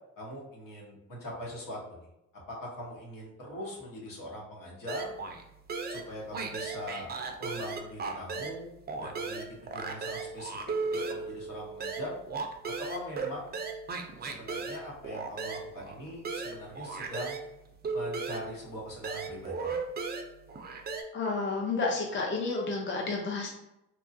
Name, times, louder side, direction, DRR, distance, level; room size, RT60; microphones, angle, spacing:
voice 1, 0.2-2.1 2.5-5.1 5.9-7.1 7.4-9.4 9.7-10.6 10.9-12.2 12.9-13.5 14.2-17.5 17.9-19.8, equal, 75° left, -3 dB, 1.2 m, -41 dB
sound 1, 4.9-5.4 5.7-8.6 8.9-17.5 17.8-21.0, right 4 dB, 30° right, 0.4 m, -36 dB
voice 2, 21.1-23.5, left 3 dB, 35° left, -1 dB, 0.6 m, -31 dB
2.9 x 2.3 x 2.6 m, 0.86 s
cardioid pair, 85°, 33 cm